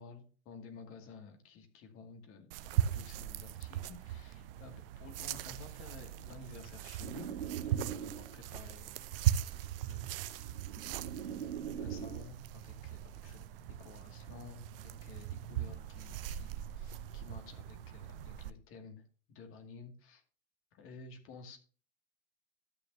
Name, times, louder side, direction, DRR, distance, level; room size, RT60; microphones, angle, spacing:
voice 1, 0.0-10.6 11.8-13.4 13.8-20.2 20.7-21.6, left 4 dB, 40° left, 4 dB, 2.4 m, -53 dB
sound 1, 2.5-18.5, right 11 dB, 60° right, 0.7 m, -39 dB
sound 2, 7.0-8.5 9.6-12.3, right 8 dB, 80° right, 1.8 m, -42 dB
13.0 x 8.8 x 2.8 m, 0.38 s
figure-of-eight pair, 80°, 32 cm